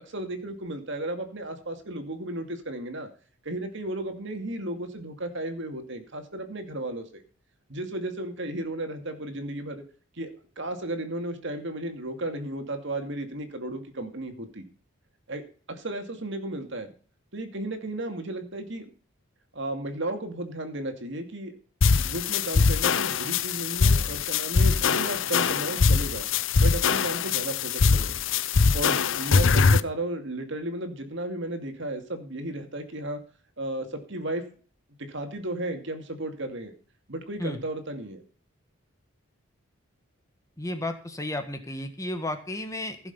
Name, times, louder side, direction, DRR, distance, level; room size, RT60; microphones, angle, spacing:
voice 1, 0.1-3.1 3.4-7.2 7.7-9.8 10.1-10.3 10.6-14.6 15.3-16.9 17.3-18.9 19.5-21.6 22.0-26.3 26.6-28.1 28.7-33.2 33.6-34.4 35.0-36.7 37.1-38.2, right 1 dB, 55° right, 6 dB, 2.4 m, -34 dB
sound 1, 21.8-29.8, left 5 dB, 60° left, 0.6 m, -22 dB
voice 2, 40.6-43.1, left 1 dB, 15° left, 7 dB, 1.4 m, -33 dB
16.0 x 7.0 x 5.5 m, 0.42 s
head